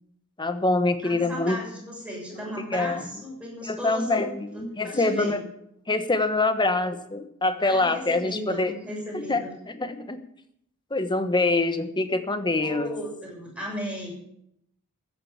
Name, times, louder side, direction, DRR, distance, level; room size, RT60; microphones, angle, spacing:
voice 1, 0.4-1.6 2.7-3.0 3.7-5.4 5.9-8.7 9.1-9.4 9.8-10.2 10.9-12.9, left 2 dB, 20° left, 9 dB, 1.2 m, -25 dB
voice 2, 1.0-4.3 4.8-5.4 7.6-9.5 12.6-14.1, equal, 5° right, -3 dB, 6.9 m, -35 dB
14.0 x 9.1 x 8.7 m, 0.74 s
head